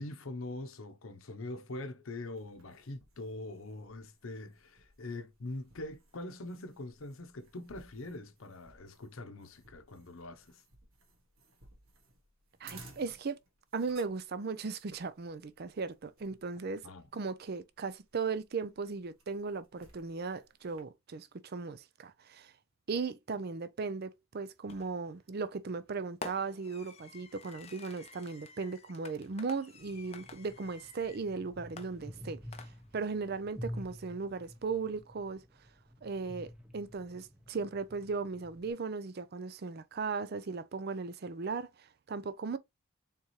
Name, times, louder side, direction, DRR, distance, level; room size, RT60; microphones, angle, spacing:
voice 1, 0.0-10.6 16.8-17.1, left 2 dB, 75° left, 0.7 m, -43 dB
sound 1, 2.3-20.8, right 3 dB, 85° right, 1.5 m, -60 dB
voice 2, 12.6-13.4 13.7-16.8 17.1-22.5 22.9-32.4 32.9-35.4 36.0-42.6, right 4 dB, 45° right, 0.5 m, -37 dB
Fireworks, 24.7-25.1 26.2-31.3 31.8-33.1, left 4 dB, 30° left, 0.5 m, -50 dB
sound 2, 29.8-38.7, equal, 5° right, 0.8 m, -49 dB
4.2 x 3.7 x 3.0 m
head